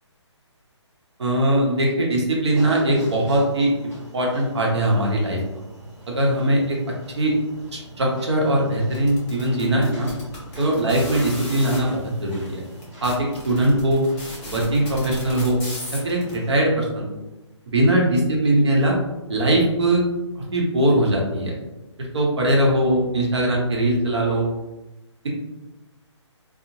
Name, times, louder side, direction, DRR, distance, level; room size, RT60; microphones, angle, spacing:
voice 1, 1.2-5.4 6.1-6.8 7.2-7.3 8.0-10.1 10.6-12.6 13.0-14.0 14.5-15.6 15.9-17.1 17.7-18.9 19.3-20.0 20.4-21.5 22.0-24.4, right 1 dB, 65° right, -2 dB, 0.8 m, -21 dB
sound 1, 2.5-16.5, right 1 dB, 15° right, 1.1 m, -40 dB
sound 2, 8.9-11.8 12.5-12.6 12.8-16.3, left 1 dB, 10° left, 0.3 m, -35 dB
2.9 x 2.0 x 2.6 m, 1.0 s
hypercardioid pair, 155°, 15 cm